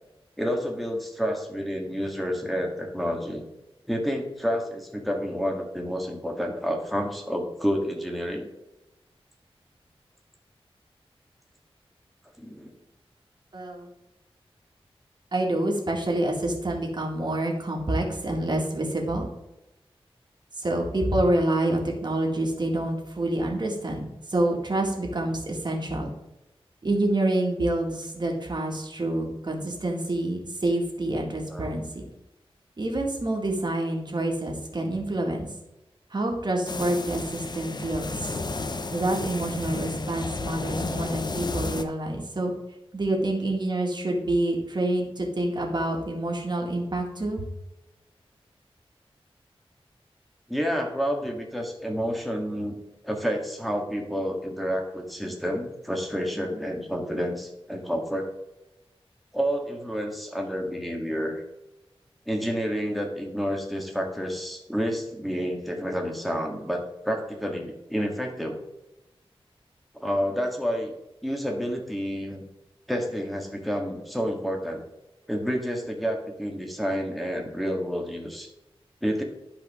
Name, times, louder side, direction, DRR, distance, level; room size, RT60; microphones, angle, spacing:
voice 1, 0.4-3.4 3.9-8.5 12.4-12.7 31.5-31.8 50.5-52.8 53.0-58.3 59.3-61.4 62.3-68.6 70.0-70.9 71.2-72.5 72.9-74.8 75.3-78.5 79.0-79.2, equal, ahead, 1 dB, 1.8 m, -29 dB
voice 2, 13.5-13.9 15.3-19.3 20.6-26.1 26.8-32.0 32.8-35.5 36.1-38.3 38.9-42.5 42.9-47.5, right 1 dB, 45° right, 0 dB, 2.1 m, -27 dB
sound 1, 36.7-41.8, left 3 dB, 45° left, 0.8 m, -32 dB
12.0 x 4.9 x 3.6 m, 0.94 s
wide cardioid pair, 95°, 10 cm